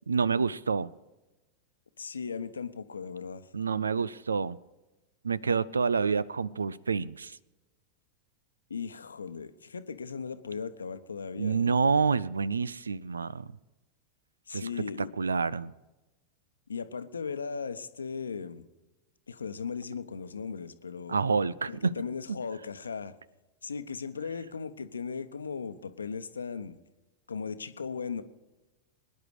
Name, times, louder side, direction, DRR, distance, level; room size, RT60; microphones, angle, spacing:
voice 1, 0.1-0.9 3.5-4.6 5.2-7.4 11.4-13.5 14.5-14.7 15.0-15.7 21.1-21.9, right 5 dB, 75° right, 0.5 m, -28 dB
voice 2, 2.0-3.5 8.7-11.8 14.5-15.1 16.7-18.6 19.3-21.2 21.7-23.1 23.6-26.8 27.3-28.2, left 5 dB, 75° left, 0.9 m, -37 dB
23.5 x 10.5 x 4.8 m
figure-of-eight pair, 90°, 0 cm